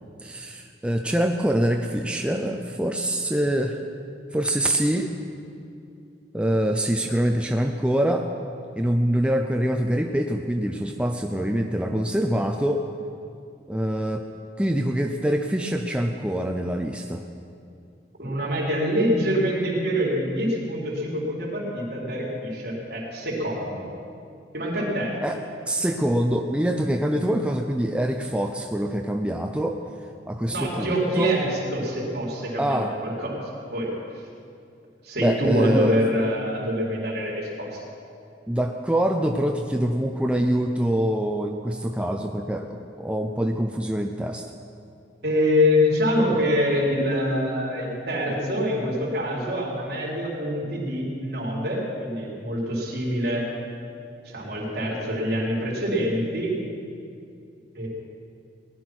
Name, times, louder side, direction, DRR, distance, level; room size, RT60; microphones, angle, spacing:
voice 1, 0.2-3.8 4.3-5.1 6.3-8.3 8.8-12.8 13.7-14.2 14.6-17.2 25.2-25.4 25.7-29.8 30.3-31.3 32.6-32.9 35.2-36.0 38.5-44.5, right 1 dB, 5° right, 3 dB, 0.5 m, -25 dB
voice 2, 18.2-23.9 24.5-25.2 30.5-33.4 33.7-33.9 35.0-37.8 45.2-53.5 54.2-56.6 57.7-57.9, equal, 60° right, -4 dB, 3.9 m, -25 dB
18.5 x 11.0 x 6.2 m, 2.5 s
head